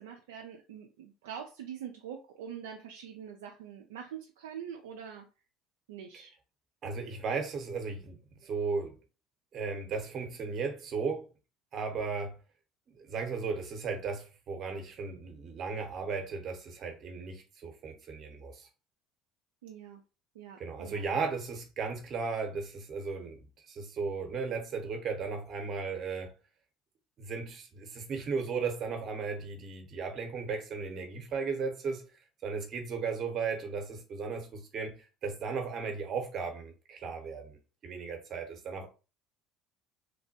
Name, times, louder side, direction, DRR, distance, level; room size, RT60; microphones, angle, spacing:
voice 1, 0.0-5.3 5.9-6.3 19.6-20.0 20.3-21.0, right 8 dB, 75° right, 0.3 m, -44 dB
voice 2, 6.8-8.9 9.5-11.3 11.7-12.4 12.9-18.7 20.6-26.3 27.2-32.0 32.4-37.6 37.8-38.9, right 5 dB, 50° right, 0.8 m, -36 dB
3.2 x 2.1 x 2.7 m
hypercardioid pair, 65°, 0 cm